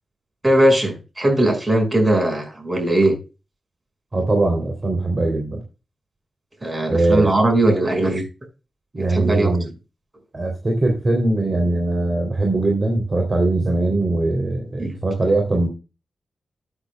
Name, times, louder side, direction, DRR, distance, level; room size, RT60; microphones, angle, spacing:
voice 1, 0.4-3.2 6.6-8.2 9.0-9.5 14.8-14.9, right 1 dB, 25° right, 4 dB, 5.6 m, -19 dB
voice 2, 4.1-5.6 6.9-7.2 8.9-9.7 10.3-15.7, right 2 dB, 40° right, 2 dB, 3.1 m, -21 dB
13.0 x 8.1 x 2.2 m, 0.30 s
cardioid pair, 55°, 0 cm